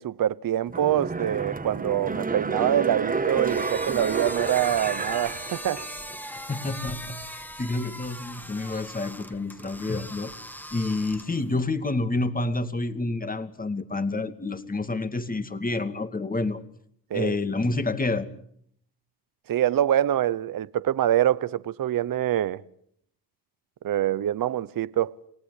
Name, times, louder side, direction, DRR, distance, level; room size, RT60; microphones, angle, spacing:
voice 1, 0.0-5.9 17.1-17.4 19.5-22.6 23.8-25.2, right 11 dB, 55° right, 1.0 m, -25 dB
sound 1, 0.7-6.2 6.6-6.7, right 4 dB, 20° right, 1.5 m, -30 dB
sound 2, 3.3-11.5, equal, 5° left, 2.3 m, -40 dB
voice 2, 6.5-10.3 10.7-16.6 17.1-18.3, left 2 dB, 20° left, 2.5 m, -29 dB
29.5 x 18.5 x 8.5 m
cardioid pair, 90°, 41 cm